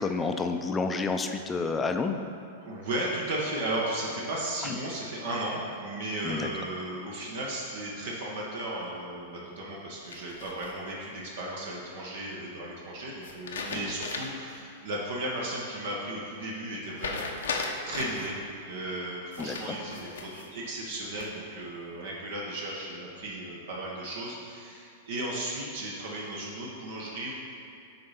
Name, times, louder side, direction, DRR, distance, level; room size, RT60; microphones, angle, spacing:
voice 1, 0.0-2.2 6.2-6.5 13.7-13.8 19.4-19.8, left 4 dB, 15° left, 6 dB, 0.5 m, -29 dB
voice 2, 2.6-17.2 17.9-18.4 18.6-27.3, right 1 dB, 70° right, -4 dB, 1.2 m, -35 dB
Rustling Paper, 10.1-11.0 13.2-14.5 14.9-15.0 17.0-18.3 19.3-20.5 20.9-21.5, left 4 dB, 85° left, 0.8 m, -36 dB
6.4 x 4.3 x 5.8 m, 2.5 s
hypercardioid pair, 120°, 0 cm